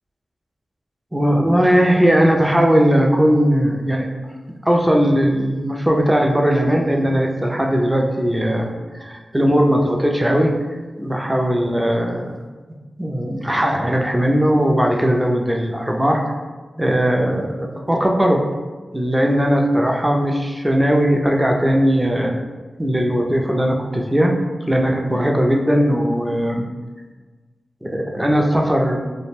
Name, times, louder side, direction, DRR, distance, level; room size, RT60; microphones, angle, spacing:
voice 1, 1.1-4.1 4.6-8.7 8.9-10.6 11.0-12.2 13.0-16.3 16.8-18.4 18.9-22.4 22.8-24.4 24.7-26.6 27.8-29.0, equal, 15° right, 1 dB, 0.4 m, -18 dB
2.4 x 2.1 x 3.2 m, 1.4 s
cardioid pair, 45°, 0 cm